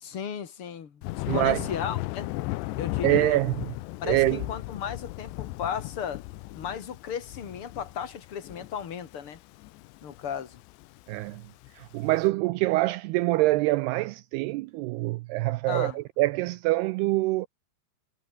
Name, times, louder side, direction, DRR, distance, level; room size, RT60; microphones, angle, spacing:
voice 1, 0.0-2.3 2.7-3.4 4.0-6.2 6.5-9.4 10.0-10.6 15.7-16.0, left 8 dB, 40° left, 2.2 m, -35 dB
Thunder, 1.0-12.1, left 19 dB, 90° left, 2.9 m, -36 dB
voice 2, 1.3-1.6 3.0-3.7 4.1-4.4 11.1-11.4 11.7-17.5, right 19 dB, 85° right, 2.4 m, -25 dB
omnidirectional pair, 5.1 m